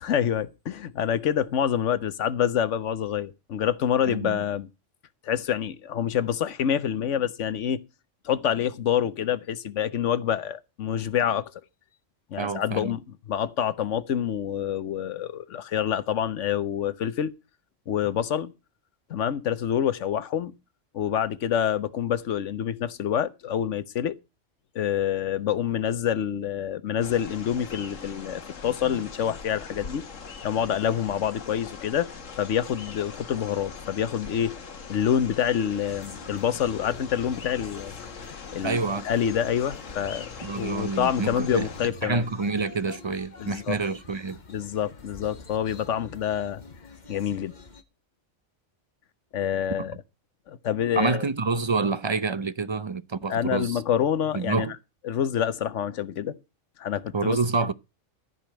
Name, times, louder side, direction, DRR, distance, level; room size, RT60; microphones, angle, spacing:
voice 1, 0.0-4.7 5.2-7.8 8.2-11.5 12.3-13.0 13.3-17.3 17.9-18.5 19.1-20.5 20.9-24.2 24.7-30.0 30.4-32.1 32.4-34.5 34.9-37.9 38.5-42.3 43.4-43.8 44.5-46.6 47.1-47.5 49.3-49.9 50.5-51.3 53.3-54.8 55.0-56.4 56.8-57.4, left 9 dB, 75° left, 1.2 m, -27 dB
voice 2, 4.1-4.4 12.4-12.9 38.6-39.1 40.4-41.7 42.0-44.4 51.0-53.8 54.3-54.7 57.1-57.7, right 4 dB, 35° right, 0.5 m, -27 dB
sound 1, 27.0-41.9, left 5 dB, 90° left, 1.7 m, -41 dB
sound 2, 35.9-47.8, left 4 dB, 40° left, 1.2 m, -46 dB
14.0 x 5.2 x 8.7 m
omnidirectional pair, 1.3 m